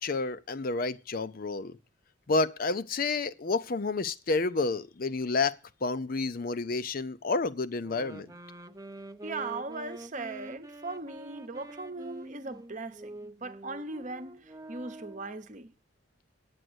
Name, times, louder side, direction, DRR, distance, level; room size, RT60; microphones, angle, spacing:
voice 1, 0.0-1.8 2.3-8.3, left 3 dB, 50° left, 0.6 m, -30 dB
sound 1, 7.8-15.4, right 1 dB, 20° right, 0.6 m, -46 dB
voice 2, 9.2-15.7, right 3 dB, 40° right, 0.9 m, -39 dB
9.1 x 7.8 x 7.9 m
head